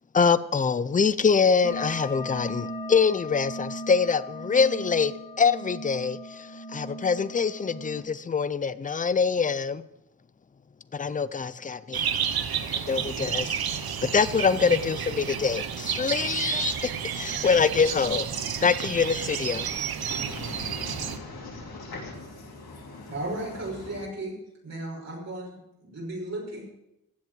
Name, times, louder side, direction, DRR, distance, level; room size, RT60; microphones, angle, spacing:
voice 1, 0.1-9.8 10.9-12.1 12.7-13.6 14.0-19.7 20.0-21.1, left 5 dB, 25° left, 0.4 m, -25 dB
sound 1, 1.6-8.0, left 1 dB, 10° right, 2.9 m, -38 dB
sound 2, 11.9-21.2, right 8 dB, 90° right, 1.1 m, -31 dB
voice 2, 20.1-23.1, left 3 dB, 90° left, 3.5 m, -41 dB
voice 3, 23.1-24.4 24.6-26.6, right 1 dB, 45° right, 5.7 m, -35 dB
15.5 x 7.5 x 7.7 m
wide cardioid pair, 175°, 36 cm